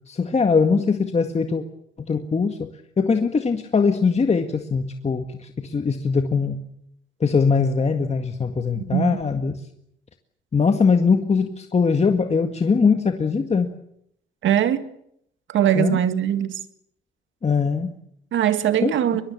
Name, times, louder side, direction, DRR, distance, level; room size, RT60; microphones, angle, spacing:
voice 1, 0.1-1.6 2.0-2.6 3.0-6.6 7.2-9.6 10.5-13.7 15.7-16.0 17.4-17.9 18.8-18.9, left 5 dB, 30° left, 1.9 m, -21 dB
voice 2, 8.8-9.2 14.4-14.8 15.5-16.6 18.3-19.2, right 10 dB, 75° right, 2.0 m, -21 dB
23.0 x 22.5 x 8.6 m
cardioid pair, 90°, 20 cm